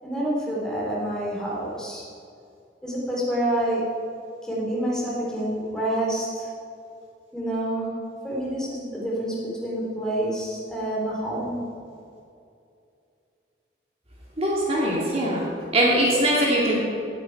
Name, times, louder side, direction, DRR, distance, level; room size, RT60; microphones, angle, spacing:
voice 1, 0.0-2.0 2.8-3.8 4.4-6.5 7.3-11.7, right 1 dB, 5° left, -6 dB, 3.3 m, -28 dB
voice 2, 14.4-15.5 15.7-16.8, right 1 dB, 35° right, -5 dB, 2.4 m, -21 dB
17.5 x 9.0 x 4.7 m, 2.5 s
head